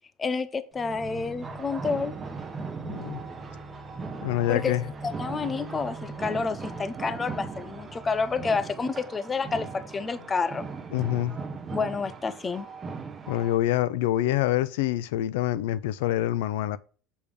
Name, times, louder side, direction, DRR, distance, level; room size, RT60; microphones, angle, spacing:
voice 1, 0.2-2.1 4.5-10.7 11.7-12.7, left 4 dB, 15° left, 0.6 m, -29 dB
sound 1, 0.7-8.7 9.3-10.6 11.2-11.3, right 3 dB, ahead, 2.4 m, -44 dB
sound 2, 1.4-13.6, right 4 dB, 20° right, 0.9 m, -39 dB
voice 2, 2.9-3.2 4.2-4.8 10.9-11.4 13.3-16.8, left 13 dB, 85° left, 0.6 m, -26 dB
7.0 x 5.0 x 5.3 m
cardioid pair, 150°, 0 cm